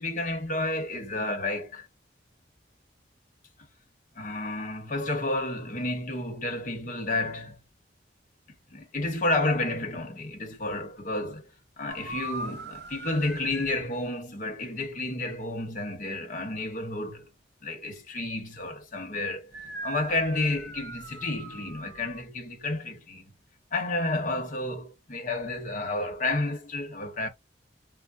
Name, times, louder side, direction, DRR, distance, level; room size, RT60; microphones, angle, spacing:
voice 1, 0.0-1.9 4.2-7.6 8.7-11.4 11.8-17.3 17.6-19.5 19.8-23.3 23.7-27.3, left 2 dB, 45° left, 0.9 m, -31 dB
sound 1, 11.9-13.9 19.5-22.2, right 2 dB, 60° right, 1.0 m, -40 dB
5.5 x 2.0 x 2.5 m
head